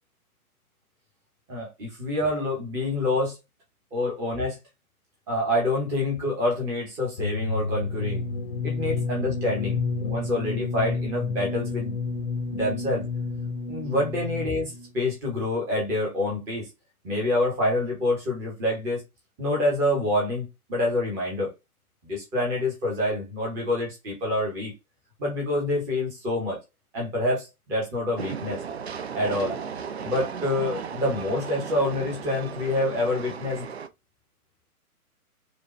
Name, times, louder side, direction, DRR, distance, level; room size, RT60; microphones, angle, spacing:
voice 1, 1.5-3.4 3.9-4.6 5.3-8.2 8.6-12.0 12.5-13.1 13.7-16.7 17.0-19.0 19.4-21.5 22.0-24.7 25.2-26.6 26.9-28.6 29.1-29.6 30.0-33.7, left 1 dB, 5° right, 0.7 m, -27 dB
sound 1, 7.2-14.9, left 4 dB, 40° left, 0.7 m, -30 dB
Train, 28.2-33.9, right 6 dB, 50° right, 0.5 m, -35 dB
5.1 x 2.2 x 3.0 m
figure-of-eight pair, 135°, 45 cm